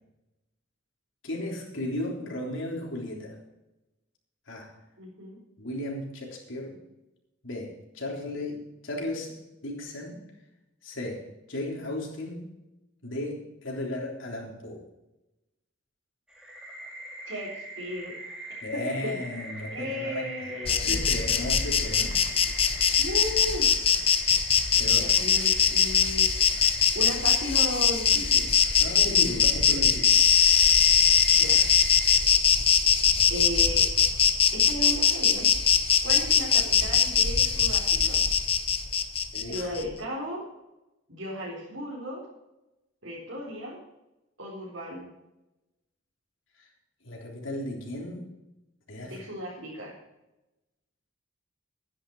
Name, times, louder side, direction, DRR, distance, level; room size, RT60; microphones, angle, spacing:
voice 1, 1.2-3.4 4.5-4.7 5.6-6.8 7.4-9.4 9.6-10.2 10.8-12.5 13.0-14.9 18.6-20.3 20.8-22.2 24.8-25.1 28.8-30.3 39.3-39.7 46.6-46.7 47.0-48.3 48.9-49.1, left 1 dB, 75° left, -1 dB, 3.5 m, -35 dB
voice 2, 5.0-5.4 17.3-18.2 18.7-19.2 19.7-21.0 23.0-23.7 24.9-26.3 26.9-28.5 31.3-31.6 33.3-33.9 34.5-35.5 36.0-38.2 39.3-40.4 41.1-42.2 43.0-43.8 44.4-45.0 49.0-50.0, equal, 80° right, -6 dB, 4.0 m, -35 dB
sound 1, 16.3-32.2, right 1 dB, 5° right, 3.3 m, -43 dB
Insect, 20.7-39.8, left 7 dB, 30° left, 0.7 m, -22 dB
12.5 x 10.0 x 4.8 m, 0.96 s
head